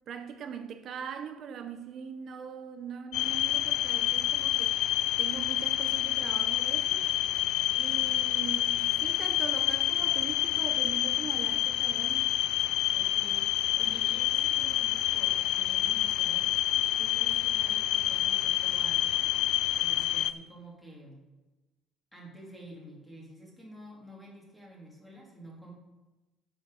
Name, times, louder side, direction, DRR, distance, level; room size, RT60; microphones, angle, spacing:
voice 1, 0.1-4.9 5.2-7.1 7.8-12.3, right 7 dB, 45° right, 0.9 m, -41 dB
sound 1, 3.1-20.3, left 13 dB, 70° left, 0.4 m, -28 dB
voice 2, 7.9-8.3 12.9-16.5 16.9-19.1 19.8-21.2 22.1-25.7, right 1 dB, 5° left, 2.6 m, -49 dB
10.5 x 6.0 x 6.5 m
cardioid pair, 160°, 0 cm